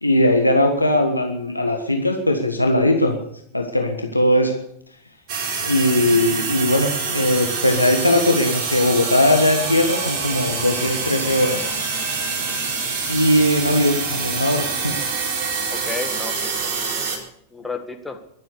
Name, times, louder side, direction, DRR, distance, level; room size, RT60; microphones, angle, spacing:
voice 1, 0.0-3.2 3.5-4.6 5.6-11.7 13.1-15.0, left 1 dB, 85° left, 3 dB, 1.5 m, -19 dB
sound 1, 5.3-17.2, right 4 dB, 40° right, 4.0 m, -26 dB
voice 2, 15.7-16.9 17.5-18.2, left 4 dB, 10° left, 5 dB, 1.8 m, -32 dB
22.5 x 7.9 x 6.8 m, 0.69 s
figure-of-eight pair, 90°, 0 cm